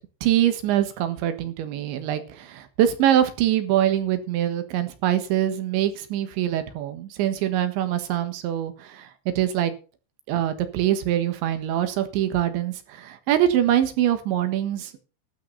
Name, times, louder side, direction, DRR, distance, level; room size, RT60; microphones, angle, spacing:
voice 1, 0.2-9.7 10.3-15.1, right 11 dB, 85° right, 9 dB, 3.9 m, -24 dB
12.5 x 9.0 x 5.6 m, 0.35 s
omnidirectional pair, 5.1 m